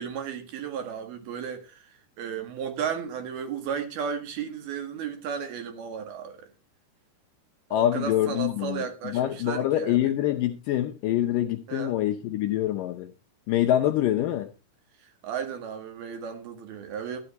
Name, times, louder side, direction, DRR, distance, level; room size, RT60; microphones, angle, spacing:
voice 1, 0.0-1.9 2.2-6.5 7.7-10.1 11.7-11.9 15.2-17.2, right 7 dB, 70° right, 3.6 m, -34 dB
voice 2, 7.7-13.1 13.5-14.5, left 12 dB, 75° left, 2.0 m, -25 dB
13.0 x 10.0 x 4.2 m
omnidirectional pair, 4.7 m